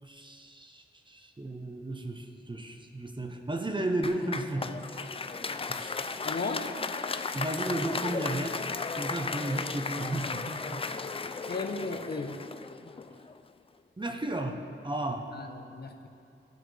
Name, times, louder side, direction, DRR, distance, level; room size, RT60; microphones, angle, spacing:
voice 1, 0.0-4.8 5.7-6.1 7.3-10.8 14.0-15.3, right 1 dB, 20° right, 4 dB, 0.7 m, -34 dB
Applause, 4.0-13.4, left 4 dB, 25° left, 0.3 m, -35 dB
voice 2, 6.2-6.7 11.5-12.4 15.3-16.1, left 3 dB, 50° left, 5 dB, 0.8 m, -35 dB
14.0 x 8.0 x 3.3 m, 2.6 s
wide cardioid pair, 90°, 21 cm